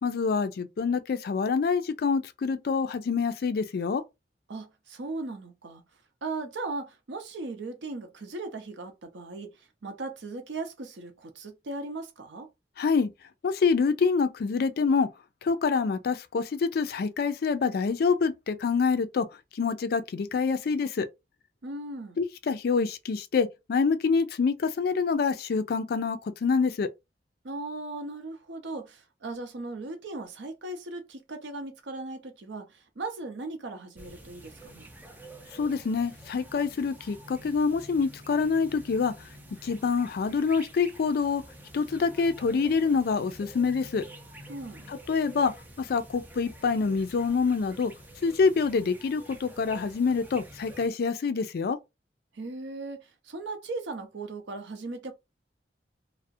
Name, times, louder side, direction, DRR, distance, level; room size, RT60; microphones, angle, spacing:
voice 1, 0.0-4.0 12.8-13.1 13.4-15.1 15.4-19.3 19.5-21.1 22.2-26.9 35.5-39.1 39.6-41.4 41.7-44.1 44.9-45.5 45.8-47.9 48.2-51.8, left 5 dB, 55° left, 0.3 m, -26 dB
voice 2, 4.5-5.8 6.2-12.5 21.6-22.2 27.4-34.9 44.5-44.9 52.3-55.1, right 2 dB, 85° right, 0.6 m, -38 dB
sound 1, 34.0-50.9, right 1 dB, 10° right, 0.4 m, -48 dB
2.3 x 2.0 x 2.6 m
head